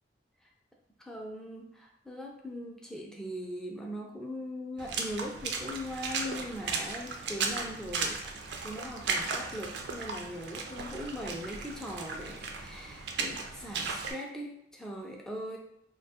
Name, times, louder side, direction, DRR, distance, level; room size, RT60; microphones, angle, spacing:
voice 1, 1.0-15.6, equal, 5° left, -1 dB, 0.3 m, -40 dB
Water / Splash splatter, 4.8-14.1, right 4 dB, 70° right, 0.3 m, -36 dB
2.3 x 2.2 x 2.8 m, 0.75 s
head